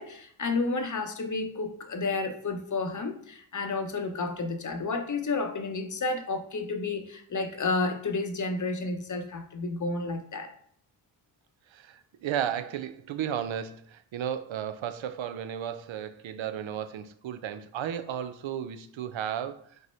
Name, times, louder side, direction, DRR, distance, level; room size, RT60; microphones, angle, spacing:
voice 1, 0.0-10.5, left 3 dB, 40° left, 0.8 m, -31 dB
voice 2, 11.7-19.7, right 9 dB, 70° right, 0.6 m, -34 dB
5.3 x 2.1 x 4.3 m
cardioid pair, 60°, 48 cm